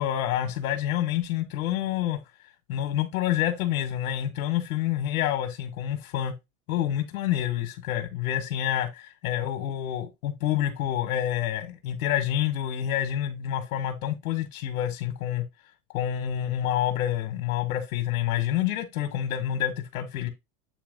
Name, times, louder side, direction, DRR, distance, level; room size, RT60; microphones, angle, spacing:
voice 1, 0.0-2.2 2.7-6.3 6.7-15.4 15.9-20.3, left 11 dB, 85° left, 1.7 m, -28 dB
8.6 x 3.0 x 5.3 m
supercardioid pair, 160°, 42 cm